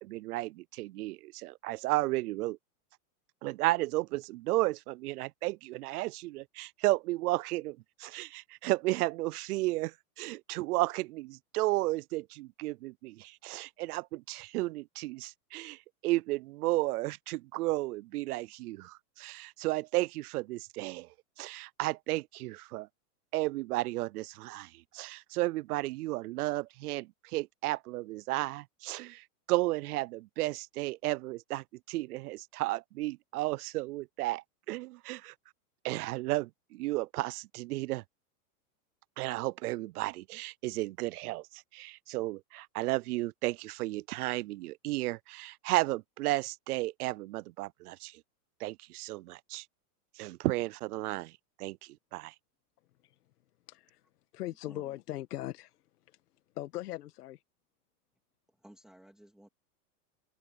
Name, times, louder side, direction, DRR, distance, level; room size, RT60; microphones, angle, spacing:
voice 1, 0.0-2.6 3.4-21.1 21.4-22.9 23.3-35.3 35.8-38.0 39.2-48.2 48.6-49.6 50.2-51.3 51.6-52.3, right 19 dB, 75° right, 0.5 m, -33 dB
voice 2, 53.7-54.0 54.3-55.8 56.1-56.2 56.6-57.4, left 14 dB, 80° left, 1.7 m, -40 dB
voice 3, 54.4-55.0 58.6-59.5, right 1 dB, ahead, 2.5 m, -56 dB
open air
supercardioid pair, 165°, 46 cm